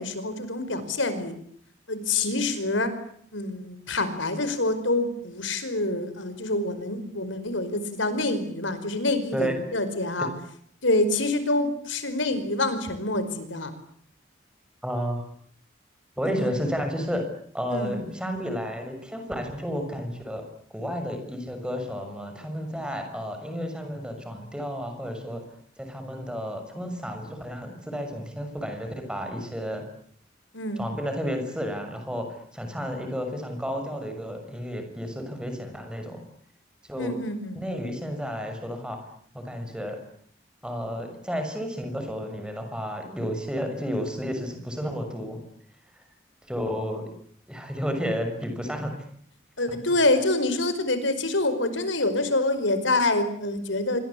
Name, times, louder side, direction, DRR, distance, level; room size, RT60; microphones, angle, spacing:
voice 1, 0.0-1.3 1.9-3.0 3.3-10.3 10.8-13.7 16.2-16.5 17.7-18.0 30.5-30.8 37.0-37.6 49.6-54.0, left 2 dB, 85° left, 11 dB, 5.2 m, -26 dB
voice 2, 14.8-15.2 16.2-17.3 17.5-20.4 20.7-25.4 25.8-29.8 30.8-36.2 36.9-37.1 37.5-39.0 39.3-40.0 40.6-45.4 46.5-47.0 47.5-48.9, equal, 5° right, 5 dB, 6.4 m, -32 dB
27.0 x 25.5 x 8.6 m, 0.63 s
head